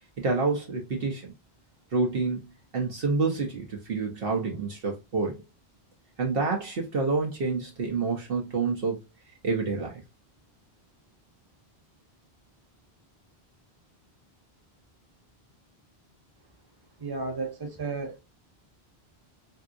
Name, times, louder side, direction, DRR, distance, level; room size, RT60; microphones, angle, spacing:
voice 1, 0.2-1.3 1.9-2.5 2.7-5.4 6.2-9.0 9.4-10.0, right 4 dB, 65° right, 0.9 m, -28 dB
voice 2, 17.0-18.2, right 3 dB, 25° right, 0.9 m, -33 dB
3.4 x 2.7 x 2.5 m
omnidirectional pair, 1.1 m